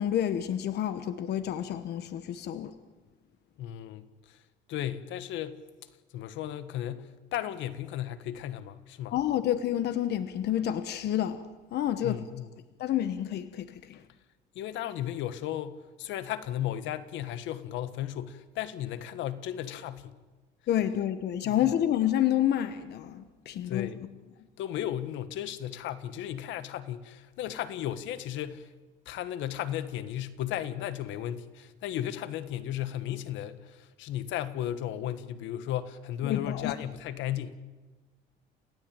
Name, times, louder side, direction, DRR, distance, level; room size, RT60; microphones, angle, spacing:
voice 1, 0.0-2.7 9.1-11.4 11.7-12.2 12.8-14.0 20.7-23.9 36.2-36.7, left 11 dB, 60° left, 1.2 m, -29 dB
voice 2, 3.6-4.4 4.7-5.6 6.1-9.1 12.0-12.5 14.5-20.2 21.4-21.6 23.7-24.0 24.6-28.7 29.0-37.5, left 11 dB, 80° left, 1.5 m, -35 dB
29.0 x 16.5 x 9.0 m
cardioid pair, 135°, 19 cm